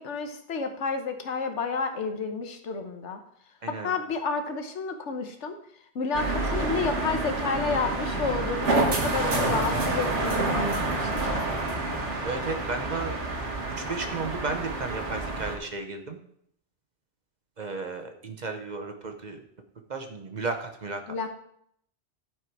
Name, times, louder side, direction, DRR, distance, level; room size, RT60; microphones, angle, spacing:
voice 1, 0.0-3.2 3.7-11.6 21.1-21.3, left 4 dB, 90° left, 6 dB, 1.3 m, -31 dB
voice 2, 3.6-3.9 12.2-13.2 13.8-16.2 17.6-19.4 19.9-21.1, right 3 dB, 40° right, 5 dB, 0.9 m, -34 dB
sound 1, 6.1-15.6, right 2 dB, 85° right, 1.7 m, -28 dB
11.0 x 4.7 x 4.6 m, 0.70 s
omnidirectional pair, 1.2 m